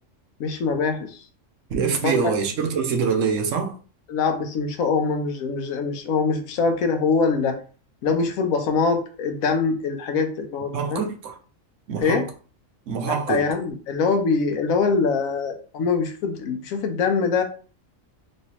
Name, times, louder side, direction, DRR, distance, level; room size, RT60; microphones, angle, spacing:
voice 1, 0.4-1.2 2.0-2.1 4.1-7.6 8.0-11.0 12.0-12.2 13.0-17.4, left 4 dB, 85° left, 1.1 m, -23 dB
voice 2, 1.7-3.7 10.7-11.4 11.9-12.2 12.9-13.5, right 6 dB, 70° right, 1.0 m, -24 dB
3.2 x 3.1 x 2.8 m
omnidirectional pair, 1.4 m